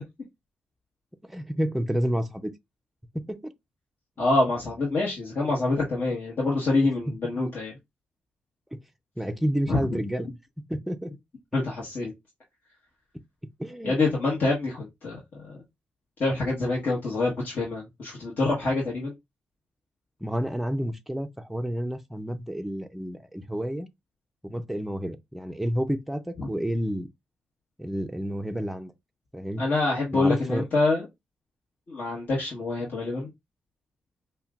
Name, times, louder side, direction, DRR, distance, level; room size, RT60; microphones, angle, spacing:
voice 1, 1.2-2.5 3.1-3.5 5.4-5.5 6.8-6.9 8.7-8.8 9.2-10.3 10.7-11.1 13.6-14.0 20.2-23.9 24.4-27.1 27.8-28.9 29.3-29.6 30.1-30.7, equal, 5° right, 0.5 m, -30 dB
voice 2, 4.2-7.7 9.7-10.0 11.5-12.1 13.8-15.6 16.2-19.1 26.4-26.5 29.6-31.1 31.9-33.3, left 2 dB, 55° left, 1.2 m, -26 dB
5.5 x 2.2 x 2.4 m
cardioid pair, 75°, 4 cm